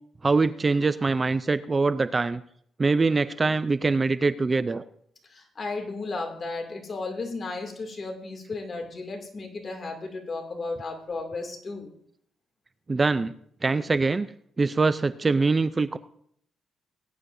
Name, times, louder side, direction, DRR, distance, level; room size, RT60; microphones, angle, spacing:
voice 1, 0.2-2.4 2.8-4.8 12.9-13.3 13.6-14.3 14.6-16.0, right 3 dB, 25° right, 14 dB, 0.4 m, -23 dB
voice 2, 5.3-11.9, left 3 dB, 40° left, 3 dB, 2.4 m, -34 dB
19.5 x 9.7 x 2.6 m, 0.67 s
cardioid pair, 90°, 0 cm